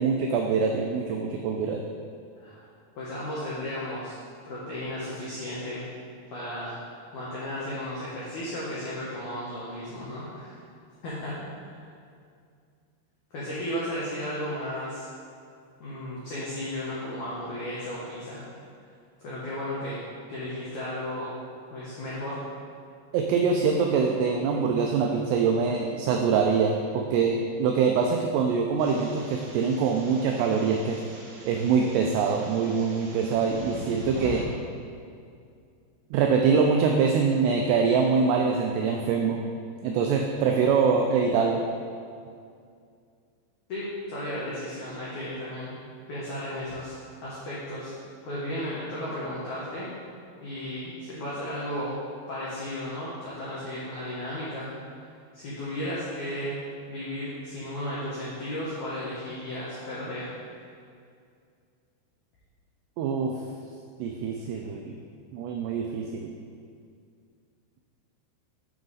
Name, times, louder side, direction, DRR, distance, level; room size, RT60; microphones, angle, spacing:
voice 1, 0.0-1.8 23.1-31.0 31.5-34.4 36.1-39.4 39.8-41.6 63.0-63.4 64.0-65.0 65.3-66.3, right 5 dB, 85° right, 2 dB, 2.4 m, -24 dB
voice 2, 3.0-4.2 4.4-5.8 6.3-6.8 7.1-10.6 11.0-11.5 13.3-15.1 15.8-18.4 19.2-20.0 20.3-21.3 21.7-22.4 43.7-45.7 46.1-47.0 47.2-47.9 48.2-49.9 50.4-52.0 52.3-54.7 55.3-56.6 56.9-60.3, left 1 dB, 80° left, -8 dB, 1.7 m, -34 dB
sound 1, 28.8-34.4, right 2 dB, 70° right, 2.1 m, -43 dB
7.5 x 6.1 x 4.0 m, 2.3 s
omnidirectional pair, 5.3 m